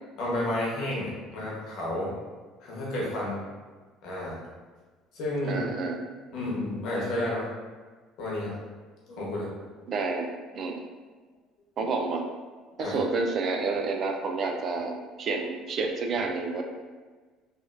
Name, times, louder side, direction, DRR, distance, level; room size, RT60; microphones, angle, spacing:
voice 1, 0.2-2.1 2.6-3.4 4.0-4.4 5.1-5.6 6.3-7.4 8.2-8.5 9.1-9.5 12.8-13.0, left 1 dB, 65° left, -4 dB, 1.1 m, -31 dB
voice 2, 5.4-6.0 9.9-10.3 10.5-10.8 11.8-12.3 12.8-16.6, right 4 dB, 50° right, 3 dB, 0.4 m, -29 dB
3.3 x 2.4 x 2.5 m, 1.4 s
supercardioid pair, 85°, 0 cm